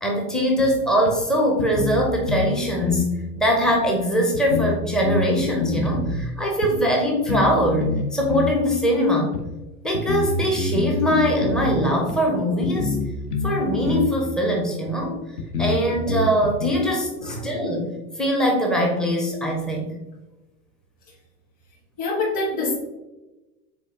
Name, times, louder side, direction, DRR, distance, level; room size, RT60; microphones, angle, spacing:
voice 1, 0.0-9.4 9.8-13.0 13.4-15.2 15.6-17.9 18.2-19.9, equal, ahead, -1 dB, 0.4 m, -22 dB
sound 1, 0.6-0.7 1.0-1.1 1.6-2.5 2.8-3.1 3.8-3.9 4.3-6.2 6.6-6.7 7.3-7.5 7.8-8.6 9.3-9.4 9.9-11.7 12.1-12.2 12.6-13.6 13.8-14.1 14.8-14.9 15.4-16.7, left 3 dB, 65° left, 0.8 m, -26 dB
voice 2, 22.0-22.7, left 3 dB, 40° left, -4 dB, 1.6 m, -25 dB
5.0 x 3.8 x 2.8 m, 1.1 s
figure-of-eight pair, 85°, 49 cm